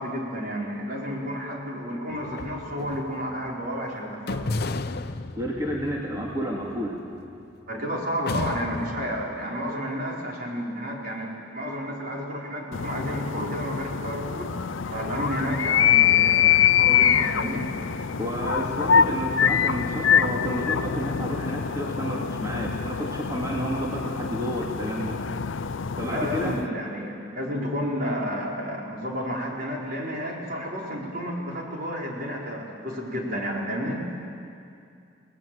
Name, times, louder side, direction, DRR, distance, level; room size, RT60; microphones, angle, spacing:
voice 1, 0.0-4.5 7.7-17.7 26.0-34.0, equal, 50° right, -3 dB, 4.8 m, -31 dB
sound 1, 2.1-3.5 4.3-7.7 8.3-9.2, left 2 dB, 55° left, 0.7 m, -34 dB
voice 2, 5.4-6.9 18.2-25.2 26.0-26.5, equal, 20° right, -3 dB, 2.2 m, -31 dB
sound 2, 12.7-26.7, left 8 dB, 90° left, 0.6 m, -24 dB
30.0 x 19.5 x 7.8 m, 2.5 s
head